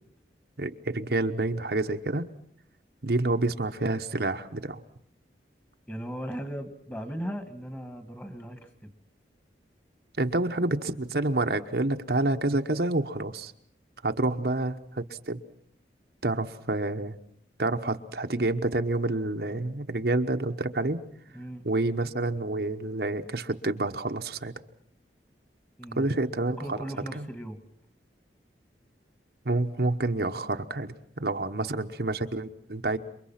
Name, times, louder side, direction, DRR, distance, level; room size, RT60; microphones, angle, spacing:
voice 1, 0.6-2.3 3.0-4.8 10.2-13.5 14.0-15.4 16.2-17.2 17.6-21.0 21.6-24.5 26.0-26.8 27.1-27.2 29.4-33.0, right 2 dB, 60° right, 5 dB, 1.1 m, -28 dB
voice 2, 5.9-8.9 14.2-14.4 21.3-21.6 25.8-26.1 26.6-27.6 31.6-31.8, equal, 10° left, 8 dB, 2.2 m, -37 dB
28.5 x 23.5 x 5.9 m, 0.65 s
head